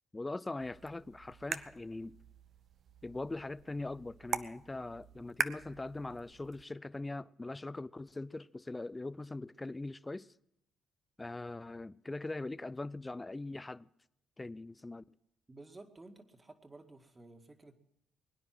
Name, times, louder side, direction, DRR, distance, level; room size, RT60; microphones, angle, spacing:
voice 1, 0.1-2.1 3.0-10.3 11.2-13.9 14.4-15.0, left 2 dB, 20° left, 0.5 m, -41 dB
sound 1, 0.6-6.6, right 7 dB, 60° right, 0.7 m, -43 dB
voice 2, 15.5-17.7, right 2 dB, 25° right, 2.1 m, -54 dB
22.0 x 9.8 x 6.0 m
supercardioid pair, 60°, 0 cm